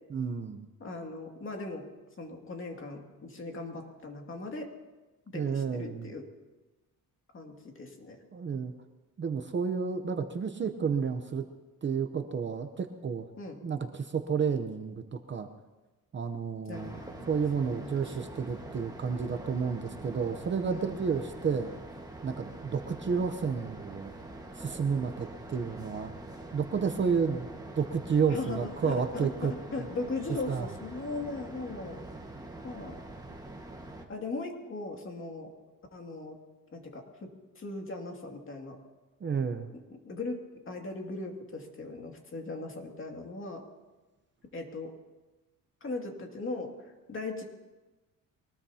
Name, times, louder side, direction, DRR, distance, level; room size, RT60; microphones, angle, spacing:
voice 1, 0.1-0.7 5.3-6.1 8.3-8.7 9.2-11.4 11.8-13.3 13.6-15.5 16.1-16.9 17.3-21.7 22.2-24.1 24.5-26.1 26.5-27.5 27.8-29.5 29.8-29.9 30.5-30.7 39.2-39.7, right 6 dB, 30° right, 7 dB, 0.8 m, -31 dB
voice 2, 0.8-1.9 2.2-4.7 5.3-6.3 7.3-8.2 13.4-13.6 16.7-18.1 20.6-20.9 28.3-32.0 32.6-33.0 34.1-35.5 35.9-36.4 36.7-38.8 39.9-40.4 40.7-43.6 44.5-44.9 45.8-47.4, left 3 dB, 35° left, 1 dB, 2.4 m, -39 dB
sound 1, 16.7-34.1, right 2 dB, 10° right, 1.6 m, -45 dB
23.5 x 19.0 x 2.9 m, 1.1 s
cardioid pair, 135°, 35 cm